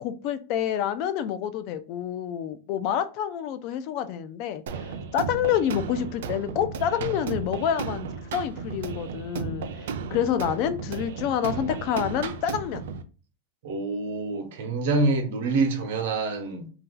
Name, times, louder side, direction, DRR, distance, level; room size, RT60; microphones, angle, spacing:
voice 1, 0.0-12.8, left 9 dB, 45° left, 0.4 m, -28 dB
sound 1, 4.7-13.0, right 5 dB, 85° right, 0.4 m, -34 dB
voice 2, 13.6-16.7, right 3 dB, 70° right, 0.9 m, -26 dB
2.7 x 2.3 x 3.6 m
supercardioid pair, 155°, 0 cm